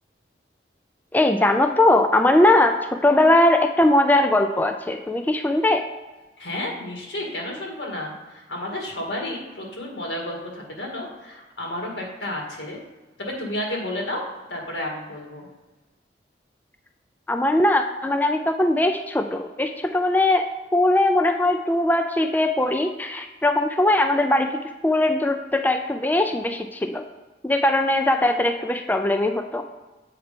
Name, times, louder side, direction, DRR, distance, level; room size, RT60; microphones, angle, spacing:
voice 1, 1.1-5.8 17.3-20.5 20.7-27.0 27.4-29.6, left 1 dB, 10° left, 6 dB, 0.3 m, -20 dB
voice 2, 6.4-12.8 13.2-14.2 14.5-15.5, left 1 dB, 85° left, -1 dB, 2.0 m, -31 dB
8.0 x 4.4 x 5.1 m, 1.2 s
head